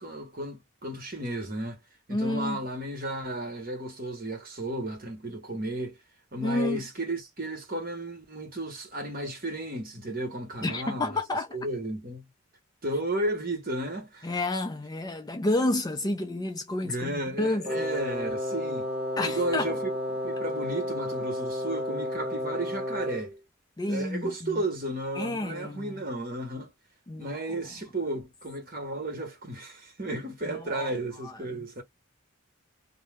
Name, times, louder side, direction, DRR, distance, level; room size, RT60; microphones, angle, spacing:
voice 1, 0.0-1.8 2.1-6.0 6.3-11.2 11.5-12.2 12.8-14.3 16.8-18.9 19.2-19.9 20.2-23.4 23.9-26.7 27.2-31.8, right 1 dB, 45° right, 1.2 m, -33 dB
voice 2, 2.1-2.6 6.4-6.8 10.6-11.6 14.2-17.8 19.2-19.8 23.8-24.6 25.2-26.0 27.1-27.4 30.5-30.9 31.2-31.7, left 2 dB, 20° left, 0.3 m, -30 dB
Wind instrument woodwind instrument, 17.6-23.4, left 1 dB, 5° right, 1.0 m, -32 dB
2.7 x 2.0 x 3.4 m
head